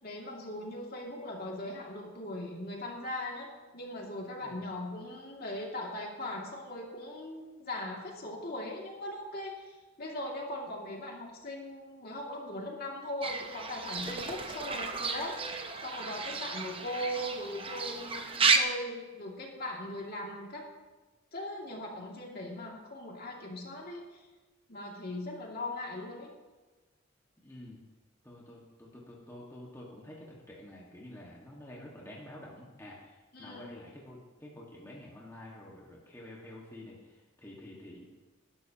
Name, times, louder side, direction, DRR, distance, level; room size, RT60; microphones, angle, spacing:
voice 1, 0.0-3.5 3.7-15.4 15.8-20.7 21.3-24.2 24.7-26.3 33.3-33.7, left 1 dB, 45° left, -1 dB, 2.5 m, -39 dB
Fowl / Bird, 13.2-18.6, right 4 dB, 25° right, 0.8 m, -32 dB
voice 2, 27.4-27.8 28.2-38.1, left 1 dB, 15° left, -4 dB, 1.7 m, -49 dB
19.5 x 11.5 x 2.9 m, 1.2 s
head